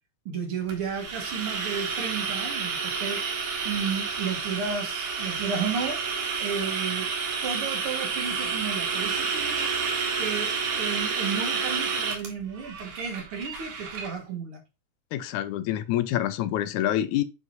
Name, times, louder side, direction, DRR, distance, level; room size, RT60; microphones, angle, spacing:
voice 1, 0.3-3.2 3.6-6.0 6.4-7.1 7.4-9.7 10.2-14.6, right 6 dB, 50° right, 2.3 m, -33 dB
sound 1, 0.7-14.1, right 5 dB, 85° right, 3.4 m, -30 dB
voice 2, 15.1-17.2, left 12 dB, 75° left, 2.0 m, -26 dB
9.2 x 5.4 x 2.7 m
omnidirectional pair, 3.6 m